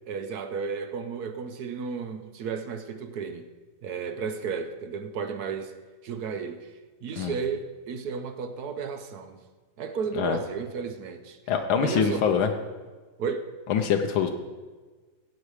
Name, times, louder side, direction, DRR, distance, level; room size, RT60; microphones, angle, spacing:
voice 1, 0.1-3.5 3.8-5.7 6.0-6.7 7.0-9.4 9.8-11.4 11.8-12.3 13.2-13.5, right 5 dB, 60° right, 9 dB, 1.2 m, -33 dB
voice 2, 11.5-12.5 13.7-14.3, left 7 dB, 85° left, 5 dB, 1.7 m, -24 dB
15.0 x 8.6 x 4.9 m, 1.4 s
omnidirectional pair, 2.2 m